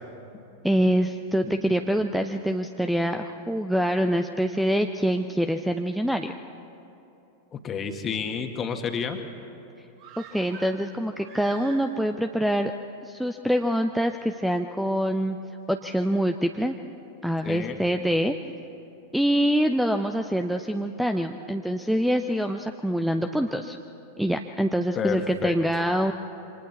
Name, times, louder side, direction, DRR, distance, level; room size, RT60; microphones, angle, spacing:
voice 1, 0.6-6.3 10.2-12.7 13.0-15.4 15.7-16.7 17.2-18.3 19.1-23.8 24.2-26.1, equal, ahead, 7 dB, 0.6 m, -25 dB
voice 2, 7.5-9.2 17.4-17.8 25.0-25.6, left 6 dB, 25° left, 5 dB, 1.7 m, -30 dB
sound 1, 10.0-12.2 12.5-12.6, right 5 dB, 50° right, 5.9 m, -46 dB
28.0 x 25.0 x 4.2 m, 2.9 s
figure-of-eight pair, 90°, 0 cm